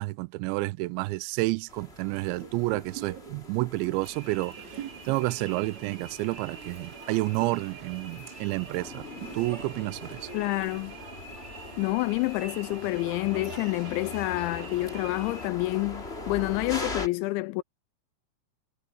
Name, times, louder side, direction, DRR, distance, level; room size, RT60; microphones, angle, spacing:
voice 1, 0.0-9.1 9.3-10.3, right 22 dB, 85° right, 2.7 m, -30 dB
sound 1, 1.7-17.1, left 2 dB, 20° left, 2.2 m, -42 dB
sound 2, 2.4-6.8 7.1-10.6 11.0-11.1, right 9 dB, 45° right, 3.2 m, -45 dB
sound 3, 4.0-15.5, right 4 dB, 30° right, 4.7 m, -45 dB
voice 2, 10.3-11.0 11.8-17.6, left 22 dB, 85° left, 2.7 m, -28 dB
omnidirectional pair, 5.7 m